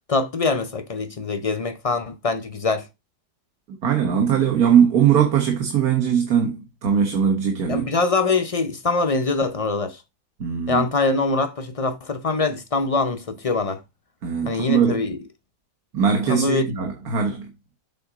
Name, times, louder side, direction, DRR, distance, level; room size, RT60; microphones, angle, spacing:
voice 1, 0.1-2.9 7.7-10.0 10.7-13.8 14.4-15.2 16.3-16.6, left 3 dB, 45° left, 0.4 m, -23 dB
voice 2, 3.7-7.9 10.4-10.8 14.2-15.1 15.9-17.4, right 7 dB, 70° right, 1.7 m, -20 dB
7.8 x 3.8 x 4.9 m
omnidirectional pair, 1.6 m